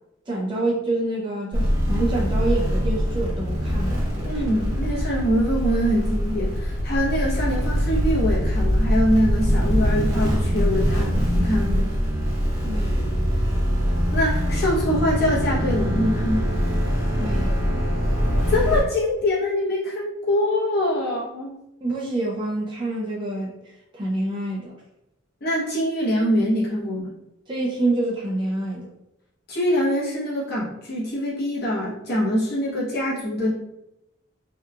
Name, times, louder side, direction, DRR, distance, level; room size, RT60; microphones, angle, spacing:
voice 1, 0.3-4.4 12.6-13.1 17.2-17.6 21.8-24.8 27.5-28.9, right 2 dB, 25° right, -3 dB, 0.4 m, -27 dB
sound 1, 1.5-18.8, equal, 65° right, 0.9 m, -23 dB
voice 2, 4.2-11.9 14.1-16.6 18.5-21.6 25.4-27.1 29.5-33.5, equal, 50° left, -6 dB, 0.8 m, -24 dB
2.8 x 2.3 x 2.3 m, 0.88 s
head